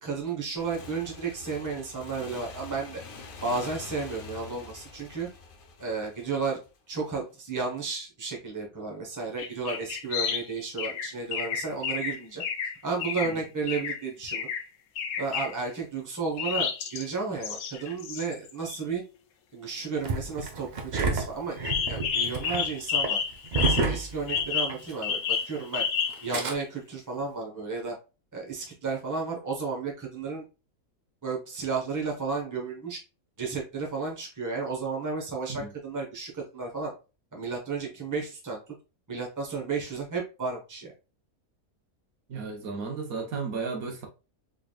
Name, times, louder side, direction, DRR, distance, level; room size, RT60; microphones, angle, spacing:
voice 1, 0.0-3.0 3.4-5.3 5.8-6.6 6.9-12.4 12.8-14.5 15.2-19.0 19.5-21.6 21.9-23.2 23.5-25.8 26.2-27.9 28.3-30.4 31.2-33.0 33.4-36.9 37.3-38.6 39.1-40.9, right 4 dB, 15° right, 0.9 m, -33 dB
Motorcycle / Engine, 0.6-6.9, left 4 dB, 50° left, 0.7 m, -45 dB
sound 1, 9.4-10.5 10.8-13.3 13.7-14.0 14.3-14.6 15.0-15.5 16.4-17.0 17.4-18.8 21.6-24.0 24.3-26.3, left 7 dB, 80° left, 1.1 m, -30 dB
Engine starting, 20.0-24.9 25.2-25.3 26.1-26.5, right 3 dB, 55° right, 0.5 m, -30 dB
voice 2, 42.3-44.1, right 4 dB, 80° right, 1.4 m, -34 dB
4.0 x 3.4 x 2.3 m
omnidirectional pair, 1.5 m